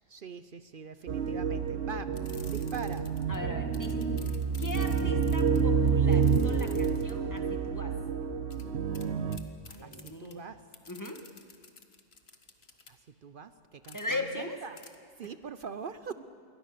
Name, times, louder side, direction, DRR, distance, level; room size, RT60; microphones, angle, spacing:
voice 1, 0.0-2.1 2.5-3.1 9.8-10.6 12.9-13.0 13.2-14.0 14.4-14.8 15.2-16.1, right 6 dB, 60° right, 12 dB, 0.9 m, -42 dB
sound 1, 1.1-9.4, right 6 dB, 75° right, 1.2 m, -28 dB
sound 2, 2.1-3.4 3.7-7.4 8.5-8.6 8.9-9.1 9.3-10.3 10.7-12.9 13.8-14.1 14.8-15.0 15.2-15.3, left 4 dB, 80° left, 1.8 m, -51 dB
voice 2, 3.3-8.0 9.7-10.4 10.9-11.3 13.9-14.6 15.2-15.3, left 2 dB, 20° left, 4 dB, 1.8 m, -39 dB
27.5 x 23.0 x 6.7 m, 2.1 s
omnidirectional pair, 1.0 m